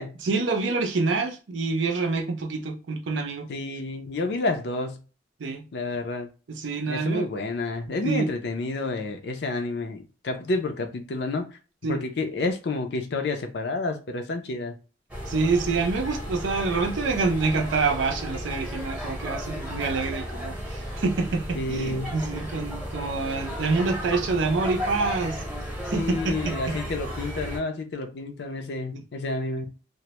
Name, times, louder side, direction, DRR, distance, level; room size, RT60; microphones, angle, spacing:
voice 1, 0.2-3.5 5.4-5.6 6.5-7.3 8.0-8.3 11.8-12.0 15.3-25.4 25.8-26.8 28.9-29.0, right 4 dB, 85° right, 0.5 m, -26 dB
voice 2, 3.5-5.0 5.7-6.3 6.9-14.7 21.5-22.1 25.9-29.7, left 2 dB, 60° left, 0.4 m, -30 dB
sound 1, 15.1-27.6, equal, 10° right, 0.7 m, -34 dB
2.1 x 2.0 x 2.8 m
head